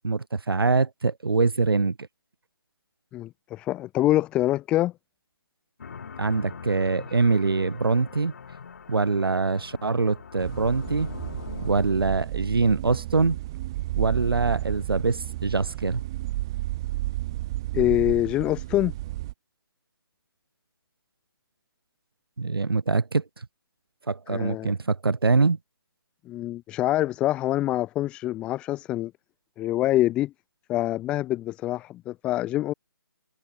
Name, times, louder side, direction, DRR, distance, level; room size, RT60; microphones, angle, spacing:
voice 1, 0.0-2.0 6.2-8.3 8.9-11.1 11.6-13.4 14.0-16.0 22.4-23.5 24.1-25.6, right 4 dB, 80° right, 5.7 m, -24 dB
voice 2, 3.1-4.9 17.7-18.9 24.3-24.7 26.3-29.1 29.6-30.3 30.7-32.7, left 15 dB, 10° left, 2.1 m, -25 dB
sound 1, 5.8-12.1, left 6 dB, 40° left, 7.0 m, -42 dB
sound 2, 10.4-19.3, right 17 dB, 10° right, 0.7 m, -32 dB
hypercardioid pair, 175°, 12 cm